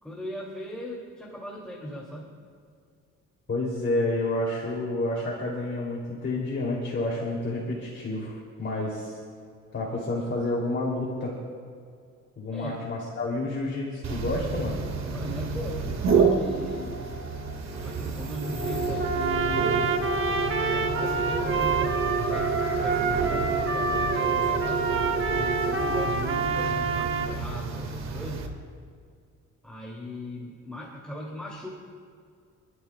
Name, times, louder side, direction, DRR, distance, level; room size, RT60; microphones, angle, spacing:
voice 1, 0.0-2.3 12.5-12.8 15.0-17.0 17.8-20.0 20.6-22.0 22.3-28.4 29.6-31.7, left 1 dB, 5° left, -3 dB, 2.9 m, -39 dB
voice 2, 3.5-9.2 9.7-11.3 12.4-14.8, left 2 dB, 40° left, -4 dB, 3.3 m, -29 dB
sound 1, 14.0-28.5, right 4 dB, 60° right, 2.2 m, -28 dB
Trumpet, 19.0-27.3, right 5 dB, 40° right, 1.4 m, -28 dB
28.5 x 12.5 x 2.4 m, 2.2 s
cardioid pair, 90°, 30 cm